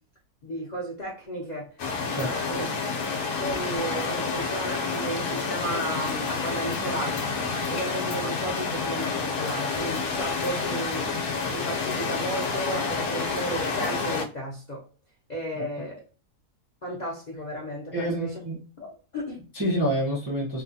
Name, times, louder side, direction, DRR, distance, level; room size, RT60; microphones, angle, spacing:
voice 1, 0.4-1.7 2.2-2.7 3.3-14.8 15.3-16.0 16.8-18.3 18.8-18.9 19.1-19.5, right 1 dB, 50° left, -3 dB, 0.5 m, -34 dB
sound 1, 1.8-14.3, left 4 dB, 80° left, 1.1 m, -29 dB
voice 2, 2.0-2.3 15.6-15.7 17.9-18.6 19.5-20.6, right 1 dB, 20° right, -5 dB, 0.5 m, -27 dB
2.8 x 2.3 x 2.6 m, 0.38 s
omnidirectional pair, 1.6 m